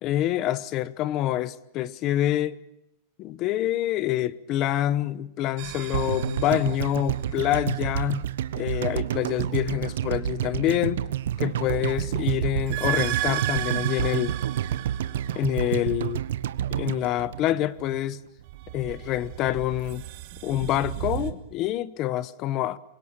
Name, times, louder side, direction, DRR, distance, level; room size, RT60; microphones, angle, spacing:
voice 1, 0.0-2.6 3.2-8.2 8.6-11.0 11.4-14.3 15.3-16.2 16.7-18.2 18.7-20.0 20.4-22.8, left 13 dB, 30° left, 1.0 m, -26 dB
sound 1, 5.6-7.5 11.4-15.9 18.4-21.3, right 17 dB, 40° right, 2.1 m, -34 dB
sound 2, 5.9-18.1 18.4-18.5, right 11 dB, 80° right, 1.2 m, -29 dB
27.0 x 23.0 x 8.9 m
supercardioid pair, 175°, 0 cm